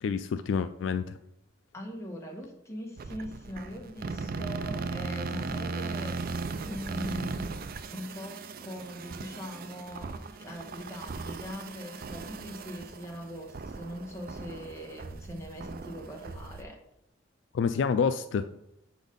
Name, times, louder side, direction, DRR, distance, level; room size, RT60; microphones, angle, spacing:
voice 1, 0.0-1.2 17.5-18.5, left 6 dB, 70° left, 11 dB, 0.3 m, -28 dB
voice 2, 1.7-6.2 6.6-7.6 7.9-10.1 10.4-16.8, equal, 15° left, -1 dB, 1.4 m, -41 dB
sound 1, 3.0-16.6, right 3 dB, 50° right, 0.4 m, -38 dB
7.1 x 4.1 x 5.2 m, 0.81 s
head